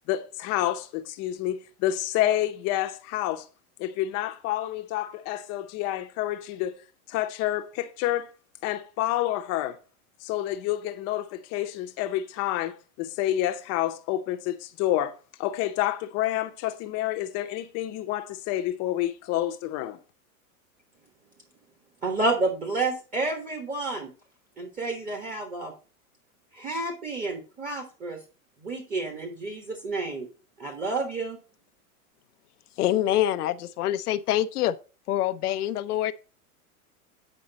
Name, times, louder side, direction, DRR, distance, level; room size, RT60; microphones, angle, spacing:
voice 1, 0.1-3.5 3.8-6.7 7.1-8.3 8.6-9.8 10.2-15.1 15.4-20.0, left 13 dB, 35° left, 0.8 m, -28 dB
voice 2, 22.0-24.1 24.6-25.7 26.5-28.2 28.6-30.3 30.6-31.4, right 3 dB, 20° right, 1.4 m, -30 dB
voice 3, 32.8-34.7 35.1-36.1, left 12 dB, 85° left, 0.7 m, -25 dB
9.0 x 5.2 x 4.0 m
supercardioid pair, 135°, 45 cm